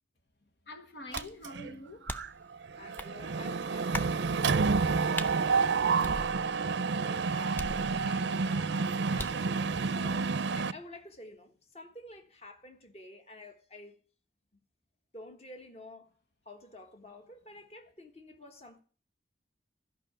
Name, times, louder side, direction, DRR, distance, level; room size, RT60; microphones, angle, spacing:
voice 1, 0.7-2.1 7.0-7.7, left 1 dB, 70° left, 1.1 m, -47 dB
sound 1, 1.1-1.4 2.1-2.4 3.0-3.1 3.9-4.2 5.2-5.3 6.0-6.7 7.6-8.2 9.2-9.5, left 1 dB, 10° left, 0.6 m, -39 dB
Mechanisms, 1.1-1.7 2.1-2.3 2.5-10.7, right 4 dB, 80° right, 0.5 m, -29 dB
voice 2, 2.8-4.1 4.4-13.9 15.1-16.1 16.4-18.8, left 1 dB, 35° left, 1.4 m, -50 dB
13.5 x 5.7 x 8.9 m
head